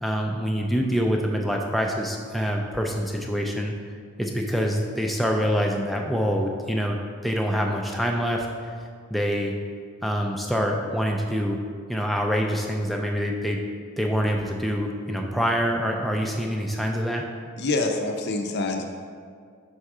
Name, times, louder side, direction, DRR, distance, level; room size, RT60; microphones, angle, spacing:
voice 1, 0.0-3.7 4.2-8.5 9.1-9.5 10.0-11.6 11.9-13.6 14.0-17.2, equal, ahead, 1 dB, 0.4 m, -25 dB
voice 2, 17.6-18.8, left 2 dB, 50° left, 3 dB, 0.5 m, -26 dB
5.4 x 3.7 x 4.8 m, 2.1 s
head